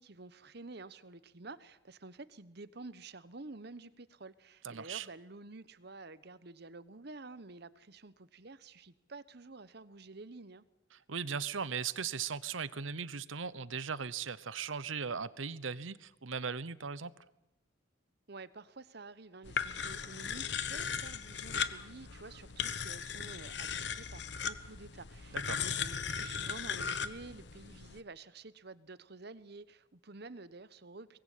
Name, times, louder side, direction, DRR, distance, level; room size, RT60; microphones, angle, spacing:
voice 1, 0.0-10.6 18.3-31.2, right 3 dB, 55° right, 15 dB, 1.1 m, -50 dB
voice 2, 4.6-5.1 10.9-17.1 25.3-25.7, right 6 dB, 80° right, 17 dB, 0.9 m, -38 dB
sound 1, 19.4-28.0, left 7 dB, 60° left, 1.1 m, -38 dB
24.0 x 20.0 x 8.5 m, 0.93 s
head